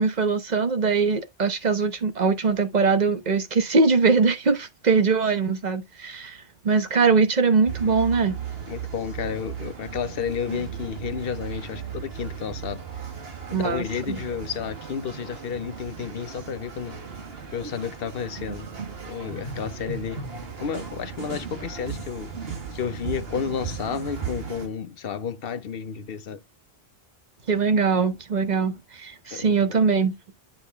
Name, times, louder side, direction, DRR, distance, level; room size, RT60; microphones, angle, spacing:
voice 1, 0.0-6.4 6.6-8.4 13.5-14.2 27.5-30.2, right 4 dB, 45° right, 1.1 m, -22 dB
sound 1, 7.6-24.7, right 6 dB, 70° right, 1.8 m, -36 dB
voice 2, 8.7-12.8 13.5-17.0 17.5-18.7 19.1-20.2 20.6-22.3 22.7-26.4 29.3-29.5, left 7 dB, 65° left, 1.0 m, -31 dB
8.5 x 3.8 x 3.4 m
omnidirectional pair, 1.1 m